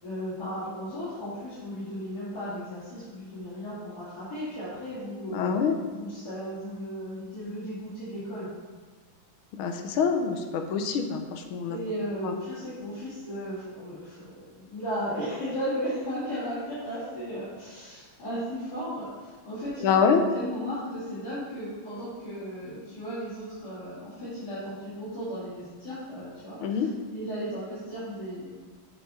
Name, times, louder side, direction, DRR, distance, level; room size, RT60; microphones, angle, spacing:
voice 1, 0.0-8.5 11.7-19.9 20.3-28.5, equal, 50° left, -13 dB, 2.8 m, -35 dB
voice 2, 5.3-5.8 9.6-11.8 12.2-12.3 19.8-20.2 26.6-26.9, left 6 dB, 80° left, 6 dB, 1.5 m, -25 dB
7.8 x 5.0 x 4.2 m, 1.5 s
omnidirectional pair, 2.3 m